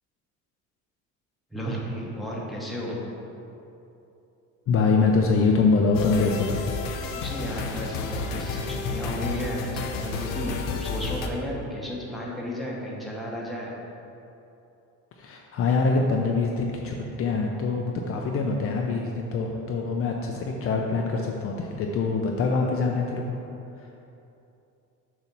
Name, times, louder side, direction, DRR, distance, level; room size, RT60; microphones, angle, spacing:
voice 1, 1.5-3.0 7.1-13.7, equal, ahead, -5 dB, 1.0 m, -33 dB
voice 2, 4.7-6.6 15.2-23.4 23.8-23.9, left 4 dB, 45° left, 0 dB, 0.5 m, -24 dB
sound 1, 5.9-11.3, left 4 dB, 80° left, 0.7 m, -31 dB
6.9 x 2.9 x 5.9 m, 2.8 s
cardioid pair, 135°, 33 cm